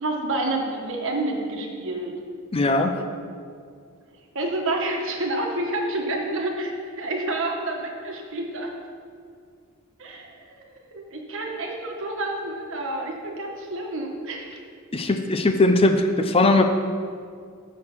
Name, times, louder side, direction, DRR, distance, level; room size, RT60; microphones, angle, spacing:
voice 1, 0.0-2.1 4.3-8.7 10.0-14.6, right 2 dB, 65° right, 1 dB, 1.3 m, -29 dB
voice 2, 2.5-3.0 14.9-16.6, left 2 dB, 25° left, 6 dB, 0.5 m, -19 dB
6.5 x 6.2 x 7.3 m, 2.2 s
head